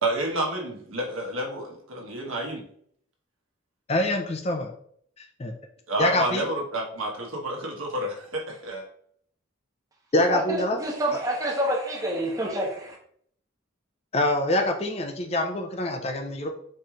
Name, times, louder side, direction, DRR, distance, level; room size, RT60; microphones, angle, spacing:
voice 1, 0.0-2.6 5.9-8.8, right 1 dB, 80° right, 0 dB, 1.2 m, -30 dB
voice 2, 3.9-4.7 5.2-5.5 6.0-6.5 10.1-10.8 11.1-11.2 14.1-16.5, left 1 dB, 30° left, 4 dB, 0.5 m, -25 dB
voice 3, 10.3-13.0, right 1 dB, 15° right, -1 dB, 0.9 m, -28 dB
4.4 x 3.1 x 3.7 m, 0.64 s
head